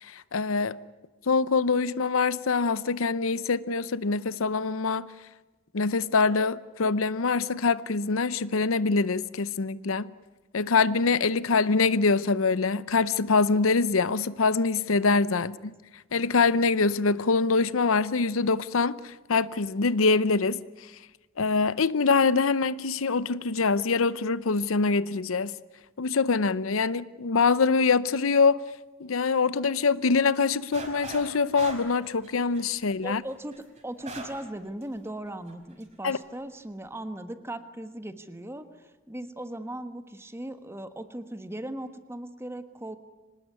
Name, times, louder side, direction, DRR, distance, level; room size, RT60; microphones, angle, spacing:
voice 1, 0.0-0.8 1.3-5.1 5.7-10.1 10.5-15.7 16.1-20.9 21.4-25.5 26.0-28.6 29.0-33.2 36.0-36.2, left 4 dB, 75° left, 0.7 m, -24 dB
sound 1, 30.7-31.3 31.5-34.4 34.8-34.9 35.5-35.8, right 2 dB, 35° right, 5.4 m, -40 dB
voice 2, 33.0-33.5 33.8-43.0, right 1 dB, 10° right, 1.4 m, -38 dB
25.5 x 19.5 x 9.6 m
head